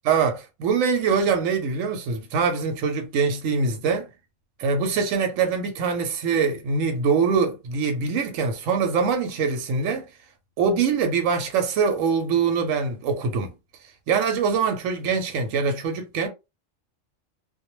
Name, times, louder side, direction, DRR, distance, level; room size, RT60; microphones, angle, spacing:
voice 1, 0.1-4.1 4.6-10.1 10.6-13.5 14.1-16.3, right 5 dB, 90° right, 1.0 m, -23 dB
2.2 x 2.1 x 2.9 m
omnidirectional pair, 1.3 m